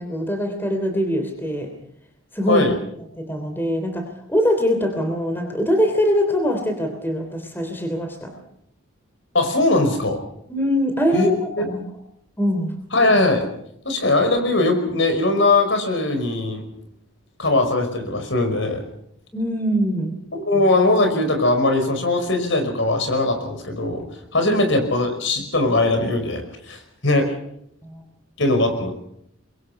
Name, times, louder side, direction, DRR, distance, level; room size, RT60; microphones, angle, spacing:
voice 1, 0.0-1.7 2.3-2.7 3.2-8.3 10.5-11.8 12.4-12.8 19.3-20.2 27.8-28.0, equal, 10° left, 5 dB, 3.2 m, -23 dB
voice 2, 9.3-10.2 11.1-11.7 12.9-13.5 13.9-16.6 17.4-18.8 20.3-24.0 24.3-27.3 28.4-28.9, left 2 dB, 60° left, 5 dB, 5.3 m, -20 dB
25.5 x 22.5 x 5.9 m, 0.73 s
head